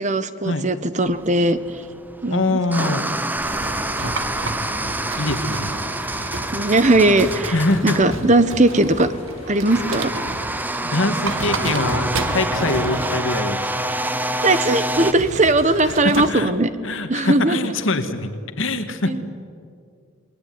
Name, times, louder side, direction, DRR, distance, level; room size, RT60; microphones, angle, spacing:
voice 1, 0.0-1.6 2.2-2.6 6.5-7.5 7.8-9.1 9.5-10.1 14.4-16.7 17.1-17.6 19.1-19.2, right 2 dB, 35° right, 12 dB, 1.2 m, -18 dB
sound 1, 1.0-15.1, right 1 dB, 10° right, 0.9 m, -27 dB
voice 2, 2.3-3.1 4.0-4.1 5.2-5.7 7.5-8.2 10.8-13.7 15.8-16.5 16.8-18.3 18.6-19.2, left 2 dB, 75° left, 7 dB, 2.2 m, -23 dB
sound 2, 3.4-16.0, left 1 dB, 35° left, 4.8 m, -42 dB
sound 3, 3.4-10.7 11.1-13.4 15.0-16.3, right 2 dB, 90° right, 1.9 m, -32 dB
29.5 x 20.5 x 9.6 m, 2.3 s
head